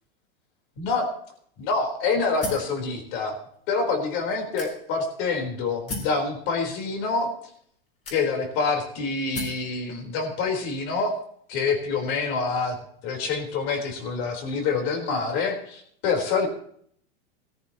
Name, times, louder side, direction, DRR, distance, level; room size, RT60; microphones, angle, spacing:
voice 1, 0.8-1.1 1.6-3.4 3.7-7.3 8.1-11.2 11.5-12.8 13.0-16.5, left 4 dB, 45° left, 3 dB, 4.2 m, -26 dB
sound 1, 2.4-2.8 3.5-3.6 4.6-5.1 5.9-6.2 7.1-7.2 8.0-8.6 9.3-9.7, left 2 dB, 25° left, 4.0 m, -35 dB
18.5 x 14.0 x 3.0 m, 0.64 s
supercardioid pair, 145°, 30 cm